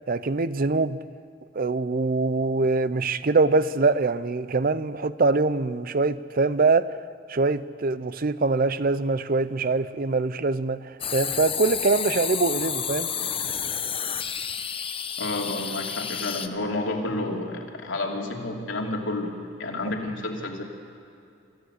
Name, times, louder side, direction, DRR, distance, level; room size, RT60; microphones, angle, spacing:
voice 1, 0.1-1.0 1.6-7.0 7.3-13.1, right 3 dB, 50° right, 15 dB, 0.6 m, -23 dB
sound 1, 11.0-16.5, left 8 dB, 30° left, 0.9 m, -30 dB
voice 2, 15.2-20.6, left 2 dB, 90° left, 0 dB, 2.9 m, -30 dB
26.0 x 14.5 x 8.1 m, 2.6 s
head